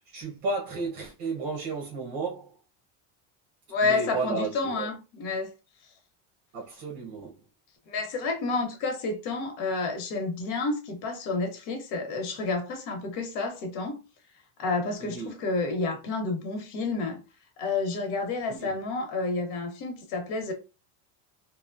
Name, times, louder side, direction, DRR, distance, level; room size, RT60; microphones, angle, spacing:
voice 1, 0.0-2.5 3.8-4.9 6.5-7.3 15.0-15.3 18.5-18.7, right 3 dB, 60° right, 0.9 m, -33 dB
voice 2, 3.7-5.5 7.9-14.0 14.6-17.2 17.6-20.5, left 3 dB, 90° left, 1.0 m, -30 dB
2.9 x 2.2 x 2.4 m
cardioid pair, 175°, 44 cm